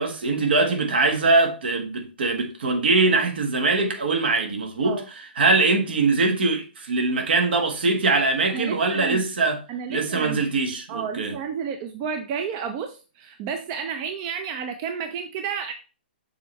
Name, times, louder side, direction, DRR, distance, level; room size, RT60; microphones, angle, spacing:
voice 1, 0.0-9.6 9.9-11.3, right 3 dB, 65° right, 1.5 m, -22 dB
voice 2, 8.5-9.3 9.7-10.4 10.9-15.7, right 6 dB, 30° right, 0.6 m, -31 dB
6.6 x 3.4 x 4.2 m
hypercardioid pair, 150°, 6 cm